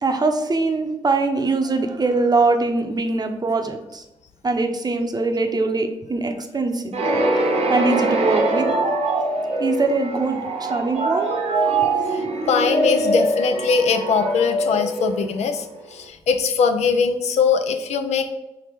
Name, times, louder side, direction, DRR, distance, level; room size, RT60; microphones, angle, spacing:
voice 1, 0.0-4.0 4.4-6.9 7.7-8.7 9.6-11.3, right 3 dB, 35° right, 5 dB, 0.7 m, -22 dB
sound 1, 6.9-15.7, right 2 dB, 70° right, 0.8 m, -23 dB
voice 2, 12.1-18.3, left 5 dB, 75° left, 7 dB, 0.5 m, -21 dB
4.9 x 2.8 x 3.5 m, 0.94 s
supercardioid pair, 50°, 12 cm